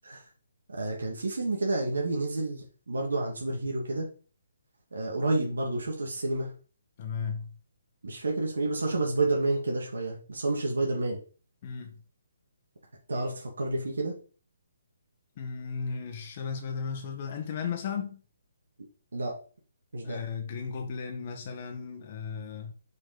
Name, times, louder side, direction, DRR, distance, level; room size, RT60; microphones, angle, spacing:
voice 1, 0.7-4.1 4.9-6.5 8.0-11.2 13.1-14.1 19.1-19.4 19.9-20.2, right 2 dB, 75° right, 2.4 m, -29 dB
voice 2, 7.0-7.6 11.6-12.0 15.4-18.2 20.0-22.7, left 6 dB, 40° left, 1.4 m, -35 dB
6.8 x 5.1 x 5.2 m
figure-of-eight pair, 145°, 0 cm